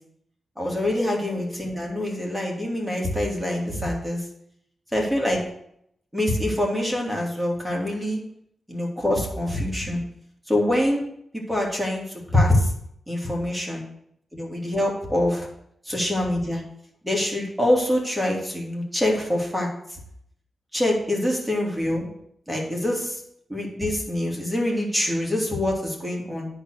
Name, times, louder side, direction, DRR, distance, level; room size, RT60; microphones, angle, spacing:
voice 1, 0.6-4.2 4.9-5.4 6.1-8.2 8.7-10.0 10.5-11.0 11.3-12.7 13.1-13.8 14.3-15.5 15.8-16.6 17.0-19.7 20.7-22.1 22.5-23.2 23.5-26.5, left 1 dB, ahead, -2 dB, 2.8 m, -25 dB
10.0 x 4.1 x 6.4 m, 0.72 s
cardioid pair, 60°, 0 cm